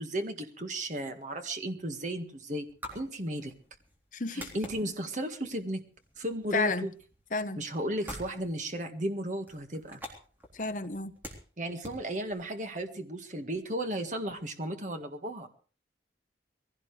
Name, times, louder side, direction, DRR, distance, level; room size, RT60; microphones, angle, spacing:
voice 1, 0.0-2.7 2.9-3.5 4.3-5.8 6.2-6.9 7.6-10.0 11.6-15.5, right 1 dB, 45° right, 1.8 m, -34 dB
sound 1, 1.1-12.9, left 1 dB, 10° right, 3.5 m, -49 dB
voice 2, 4.1-4.5 6.5-6.9 7.3-7.6 10.5-11.1, left 3 dB, 45° left, 1.1 m, -31 dB
22.0 x 16.5 x 3.3 m
head